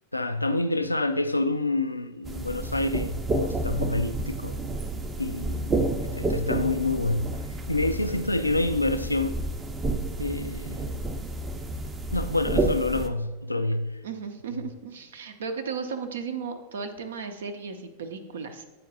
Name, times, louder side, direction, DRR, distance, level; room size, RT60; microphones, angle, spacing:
voice 1, 0.1-4.6 5.2-5.6 6.0-7.4 7.7-9.4 10.2-10.9 12.1-14.0, left 2 dB, 85° left, 0.3 m, -27 dB
sound 1, 2.2-13.1, right 2 dB, 20° right, 0.6 m, -30 dB
voice 2, 5.5-6.0 14.0-18.6, right 5 dB, 65° right, 0.7 m, -35 dB
9.2 x 4.4 x 4.0 m
figure-of-eight pair, 90°, 0 cm